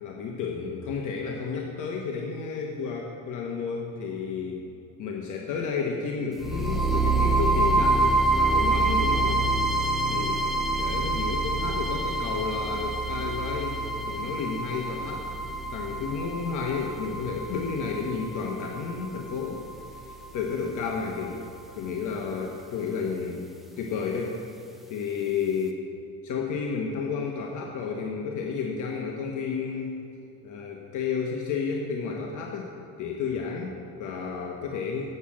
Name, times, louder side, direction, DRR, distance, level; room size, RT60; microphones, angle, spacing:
voice 1, 0.0-4.7 5.0-9.4 10.1-10.4 10.8-15.3 15.7-21.5 21.8-23.5 23.8-24.4 24.9-25.8 26.2-30.0 30.4-32.7 33.0-35.0, left 5 dB, 55° left, 0 dB, 1.1 m, -31 dB
sound 1, 6.4-20.4, right 2 dB, ahead, 0.7 m, -27 dB
8.6 x 7.9 x 6.2 m, 2.8 s
cardioid pair, 130°, 38 cm